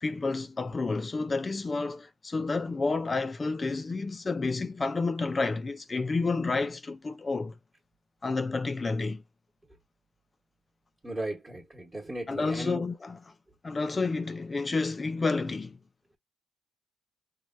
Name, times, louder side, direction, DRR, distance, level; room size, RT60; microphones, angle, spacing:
voice 1, 0.0-7.6 8.2-9.2 12.3-13.2 13.6-15.8, left 3 dB, 30° left, 0.3 m, -30 dB
voice 2, 11.0-12.9, right 1 dB, 20° right, 1.0 m, -36 dB
3.1 x 2.2 x 2.5 m
cardioid pair, 90°, 0 cm